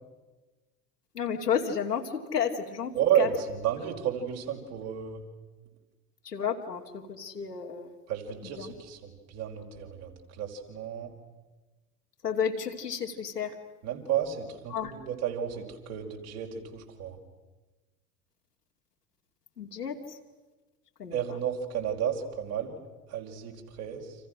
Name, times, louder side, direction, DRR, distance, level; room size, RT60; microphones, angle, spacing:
voice 1, 1.1-3.3 6.2-7.9 8.4-8.7 12.2-13.5 14.7-14.9 19.6-20.2 21.0-21.2, left 7 dB, 90° left, 1 dB, 2.7 m, -32 dB
voice 2, 2.9-5.2 8.1-11.1 13.8-17.2 21.1-22.8 23.1-24.2, right 9 dB, 60° right, 1 dB, 5.3 m, -32 dB
29.5 x 27.0 x 6.4 m, 1.2 s
hypercardioid pair, 75°, 46 cm